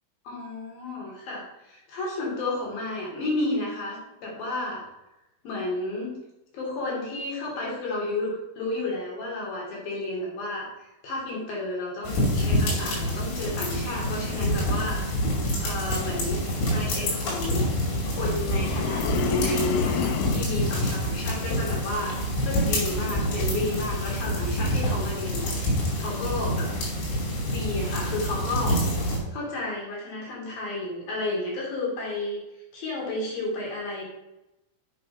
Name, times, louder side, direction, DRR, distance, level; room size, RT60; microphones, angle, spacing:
voice 1, 0.3-4.8 5.4-6.2 6.5-10.7 11.0-15.0 15.6-16.4 16.7-17.7 18.1-22.2 22.4-26.7 27.5-28.8 29.3-32.4 32.7-34.1, left 2 dB, 50° left, -4 dB, 4.2 m, -32 dB
sound 1, 12.0-29.2, equal, 70° left, 5.2 m, -27 dB
sound 2, 18.5-20.6, left 9 dB, 90° left, 3.3 m, -29 dB
7.6 x 6.3 x 5.6 m, 0.94 s
omnidirectional pair, 5.7 m